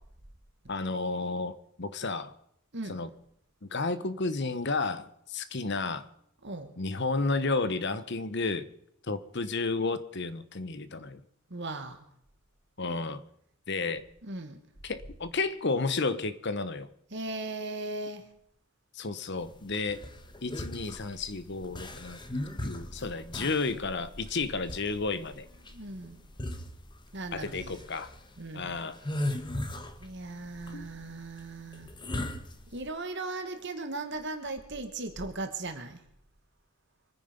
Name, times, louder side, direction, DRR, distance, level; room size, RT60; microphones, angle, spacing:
voice 1, 0.7-2.3 2.9-3.1 3.6-6.1 6.8-8.7 9.0-11.2 12.8-13.2 13.7-14.0 14.8-16.9 18.9-20.0 20.4-22.2 22.6-25.5 27.3-28.1 28.5-29.0 30.7-30.9, left 3 dB, 50° left, 14 dB, 1.0 m, -32 dB
voice 2, 11.5-12.0 14.2-14.6 17.1-18.2 25.7-26.2 27.1-27.8 28.4-28.8 30.0-31.9 32.7-36.0, right 2 dB, 50° right, 7 dB, 1.7 m, -37 dB
sound 1, 19.5-32.9, left 1 dB, 20° left, 1.3 m, -38 dB
25.0 x 9.8 x 5.2 m, 0.73 s
head